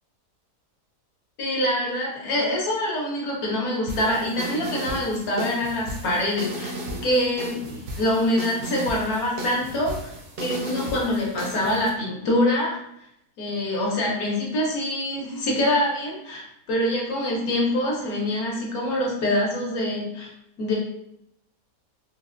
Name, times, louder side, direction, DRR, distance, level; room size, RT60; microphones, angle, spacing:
voice 1, 1.4-6.7 7.0-10.1 10.4-12.8 13.4-20.3 20.6-20.8, left 1 dB, 70° left, -3 dB, 1.2 m, -25 dB
sound 1, 3.9-11.9, right 1 dB, 65° right, 0.9 m, -35 dB
3.8 x 2.1 x 2.4 m, 0.78 s
omnidirectional pair, 1.7 m